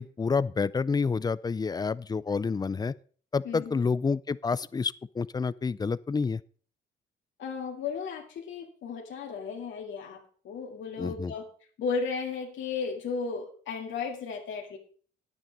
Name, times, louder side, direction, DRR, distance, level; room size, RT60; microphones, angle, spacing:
voice 1, 0.0-2.9 3.3-6.4 11.0-11.3, left 5 dB, 20° left, 0.4 m, -29 dB
voice 2, 3.4-3.8 7.4-11.4 11.8-14.8, left 5 dB, 75° left, 2.2 m, -34 dB
9.8 x 9.1 x 5.2 m
cardioid pair, 90°, 20 cm